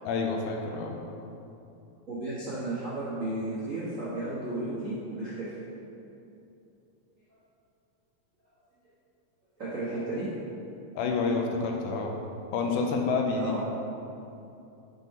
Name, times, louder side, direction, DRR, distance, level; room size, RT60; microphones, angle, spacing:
voice 1, 0.0-1.0 11.0-12.1 12.5-13.7, left 4 dB, 80° left, 1 dB, 1.9 m, -28 dB
voice 2, 2.1-5.6 9.6-10.4 13.4-13.6, right 2 dB, 70° right, -11 dB, 0.7 m, -33 dB
6.0 x 5.3 x 5.7 m, 2.8 s
omnidirectional pair, 3.9 m